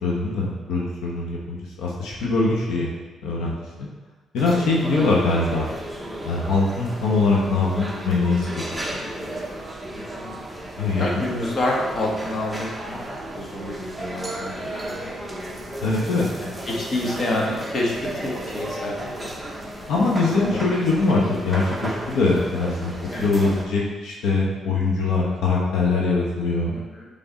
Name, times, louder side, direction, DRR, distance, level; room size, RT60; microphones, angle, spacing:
voice 1, 0.0-2.9 3.2-3.9 4.3-5.7 6.2-9.0 10.8-11.0 15.8-16.3 19.9-22.9 23.2-26.7, left 3 dB, 85° left, -3 dB, 1.1 m, -22 dB
sound 1, 4.4-23.6, right 1 dB, 5° right, 1.0 m, -34 dB
voice 2, 9.9-10.4 10.9-13.0 13.4-15.1 16.4-19.3 20.1-20.7 23.1-23.3 26.7-27.1, left 1 dB, 45° left, -3 dB, 1.5 m, -28 dB
7.4 x 3.8 x 4.1 m, 1.3 s
cardioid pair, 90°, 0 cm